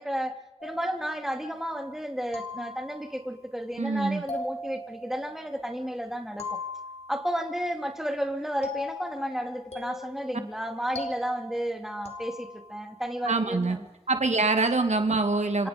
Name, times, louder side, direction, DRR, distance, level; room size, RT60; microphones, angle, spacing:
voice 1, 0.0-6.6 7.1-13.9 15.6-15.7, equal, 5° right, 4 dB, 2.9 m, -32 dB
sound 1, 0.6-1.7 2.3-3.3 4.3-5.8 6.4-7.6 8.6-12.9, left 3 dB, 65° left, 4.2 m, -40 dB
voice 2, 3.8-4.2 13.2-13.8 14.1-15.7, right 3 dB, 80° right, 7 dB, 2.1 m, -25 dB
27.5 x 25.0 x 5.2 m, 0.92 s
wide cardioid pair, 70°, 12 cm